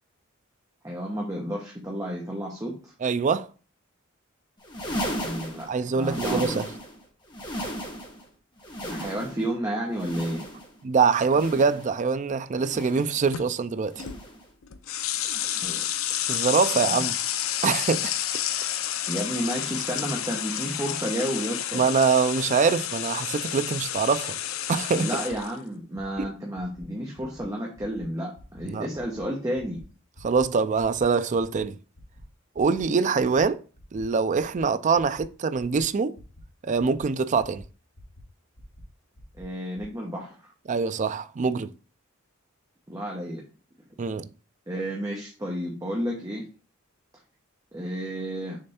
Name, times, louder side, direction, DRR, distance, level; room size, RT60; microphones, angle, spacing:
voice 1, 0.8-2.9 4.9-5.7 5.9-6.6 8.8-10.4 15.6-15.8 16.9-17.1 19.1-21.8 24.9-29.8 39.4-40.5 42.9-43.4 44.7-46.5 47.7-48.6, equal, 15° right, 1.0 m, -31 dB
voice 2, 3.0-3.5 5.7-6.7 10.8-14.0 16.3-17.2 17.6-18.2 21.7-24.4 24.7-25.1 26.2-26.3 28.7-28.9 30.2-31.8 32.6-33.6 33.9-36.2 36.6-37.6 40.7-41.7 44.0-44.3, right 5 dB, 35° right, 0.4 m, -24 dB
sound 1, 4.6-7.0 7.3-8.2 8.6-9.5 9.9-10.8 11.2-12.0 12.5-13.2 13.9-14.4 15.2-15.7 16.5-17.0 17.9-18.2 19.2-19.4 20.5-20.6, equal, 20° left, 1.6 m, -36 dB
sound 2, 11.2-11.5 13.3-13.5 14.0-14.2 14.6-25.5, left 11 dB, 70° left, 0.5 m, -30 dB
sound 3, 25.9-26.2 26.5-26.8 27.1-27.4 27.7-28.0 28.3-28.6 28.9-29.2 29.5-29.8 30.1-30.4 30.7-31.0 31.3-31.6 31.9-32.2 32.5-32.8 33.1-33.4 33.7-34.0 34.3-34.6 34.9-35.2 35.5-35.8 36.1-36.4 36.7-37.0 37.3-37.6 37.9-38.2 38.5-38.8 39.1-39.4 39.7-39.8, left 1 dB, 50° left, 1.6 m, -51 dB
6.5 x 3.4 x 4.2 m
head